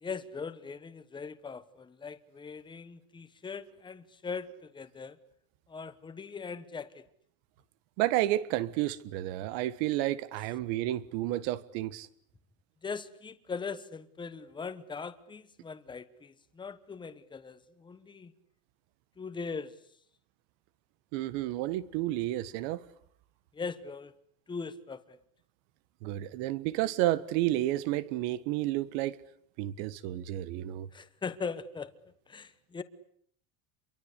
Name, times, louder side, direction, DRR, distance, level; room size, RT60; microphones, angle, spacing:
voice 1, 0.0-5.2 5.7-7.0 12.8-18.3 19.2-19.7 23.5-24.1 24.5-25.2 30.9-31.9 32.3-32.8, left 5 dB, 10° left, 1.1 m, -40 dB
voice 2, 8.0-12.1 21.1-22.8 26.0-29.2 29.6-30.9, right 15 dB, 80° right, 1.7 m, -31 dB
28.0 x 23.5 x 8.4 m
cardioid pair, 170°, 38 cm